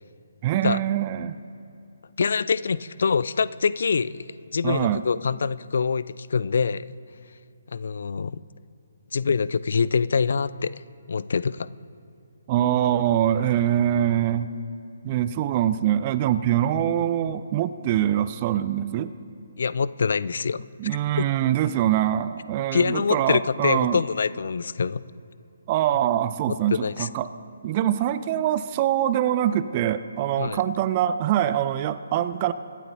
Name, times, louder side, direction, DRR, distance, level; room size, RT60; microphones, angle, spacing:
voice 1, 0.4-1.4 4.6-5.0 12.5-14.5 15.0-19.1 20.8-24.0 25.7-27.3 27.6-32.5, right 11 dB, 30° right, 13 dB, 0.4 m, -24 dB
voice 2, 2.2-4.2 4.5-6.9 7.7-8.4 9.1-10.8 11.1-11.7 19.6-20.6 21.2-21.3 22.7-25.0 26.7-27.1 30.4-30.6, left 5 dB, 55° left, 18 dB, 0.3 m, -25 dB
24.0 x 12.0 x 2.7 m, 2.7 s
figure-of-eight pair, 135°, 0 cm